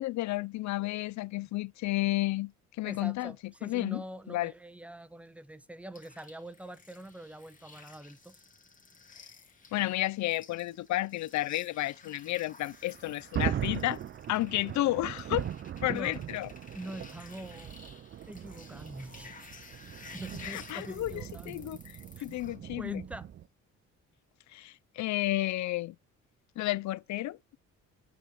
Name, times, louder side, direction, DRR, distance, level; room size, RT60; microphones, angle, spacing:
voice 1, 0.0-2.5 2.8-3.3 3.6-4.5 9.2-9.3 9.7-14.0 14.3-15.5 15.8-16.5 20.4-21.8 22.2-23.0 24.5-26.0 26.6-27.6, left 17 dB, 70° left, 0.5 m, -32 dB
voice 2, 2.8-8.4 9.8-9.9 15.9-16.2 16.7-17.8 18.3-19.4 20.1-21.7 22.2-22.3 22.8-23.3, right 1 dB, 5° right, 0.8 m, -44 dB
sound 1, 5.9-22.6, left 4 dB, 25° left, 2.4 m, -54 dB
Thunder, 12.7-23.5, right 10 dB, 40° right, 0.4 m, -39 dB
9.0 x 4.4 x 6.6 m
cardioid pair, 90°, 30 cm